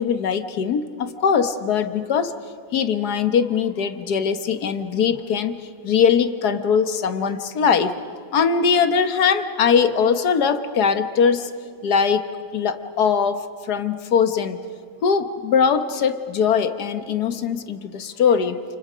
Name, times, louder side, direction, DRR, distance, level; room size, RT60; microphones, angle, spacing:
voice 1, 0.0-2.3 2.7-5.6 5.8-8.0 8.3-11.5 11.8-12.2 12.5-14.6 15.0-18.6, left 6 dB, 60° left, 10 dB, 1.6 m, -21 dB
29.0 x 29.0 x 5.1 m, 2.3 s
omnidirectional pair, 2.0 m